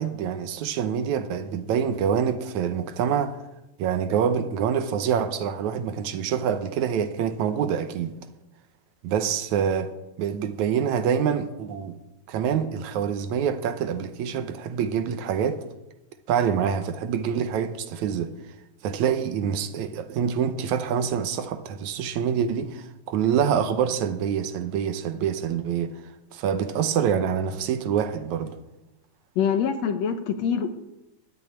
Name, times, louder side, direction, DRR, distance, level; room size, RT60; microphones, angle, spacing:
voice 1, 0.0-3.4 3.8-8.1 9.0-9.9 10.2-12.0 12.3-15.6 16.3-18.3 18.8-26.0 26.3-28.6, right 8 dB, 75° right, 2.2 m, -26 dB
voice 2, 29.4-30.7, left 7 dB, 70° left, 2.0 m, -24 dB
12.5 x 9.6 x 9.4 m
omnidirectional pair, 3.6 m